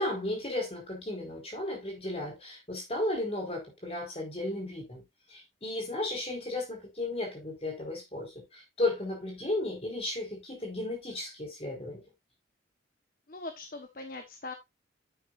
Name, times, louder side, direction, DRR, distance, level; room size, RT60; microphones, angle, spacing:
voice 1, 0.0-5.0 5.3-12.0, left 2 dB, 30° left, 4.8 m, -34 dB
voice 2, 13.3-14.5, left 2 dB, 50° left, 1.2 m, -41 dB
10.5 x 8.4 x 2.5 m
head